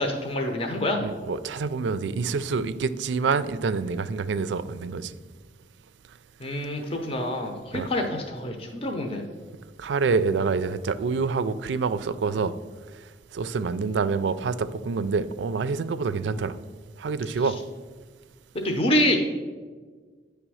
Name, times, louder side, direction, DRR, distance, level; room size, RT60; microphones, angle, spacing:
voice 1, 0.0-1.0 6.4-9.2 18.6-19.2, left 1 dB, 30° left, 3 dB, 0.7 m, -26 dB
voice 2, 1.0-5.1 7.7-7.9 9.8-12.5 13.3-16.6 17.0-17.6, right 4 dB, 80° right, 14 dB, 0.4 m, -27 dB
9.1 x 3.4 x 6.2 m, 1.4 s
head